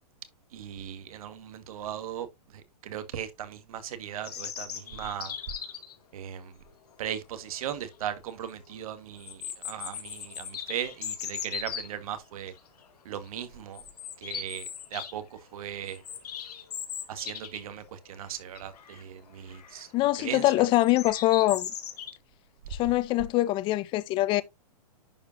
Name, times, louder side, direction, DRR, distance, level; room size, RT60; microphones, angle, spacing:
voice 1, 0.5-2.3 2.5-5.3 6.1-6.5 7.0-12.5 13.0-13.8 14.2-16.0 17.1-19.9 20.2-20.4, right 10 dB, 60° right, 1.5 m, -38 dB
sound 1, 4.2-5.9 7.5-7.6 8.0-8.1 9.2-11.9 12.6-12.8 13.1-13.3 13.7-15.1 15.5-17.7 18.0-18.1 18.5-19.0 19.5-19.9 20.7-22.1, left 8 dB, 70° left, 2.1 m, -38 dB
voice 2, 19.9-21.7 22.7-24.4, left 17 dB, 25° left, 0.5 m, -24 dB
11.0 x 4.6 x 2.6 m
hypercardioid pair, 135°, 21 cm